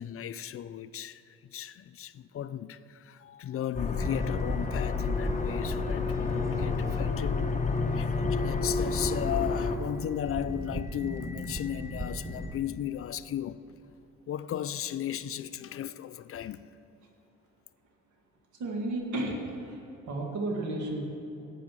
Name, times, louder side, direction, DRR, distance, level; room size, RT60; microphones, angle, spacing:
voice 1, 0.0-7.5 7.9-13.6 14.3-16.7, left 10 dB, 50° left, 0.4 m, -36 dB
sound 1, 3.7-9.8, left 4 dB, 25° left, 1.0 m, -29 dB
sound 2, 4.0-12.6, right 1 dB, 10° right, 0.8 m, -40 dB
voice 2, 18.6-19.8 20.1-21.0, right 2 dB, 75° right, 2.1 m, -32 dB
11.5 x 8.3 x 6.1 m
cardioid pair, 90°, 30 cm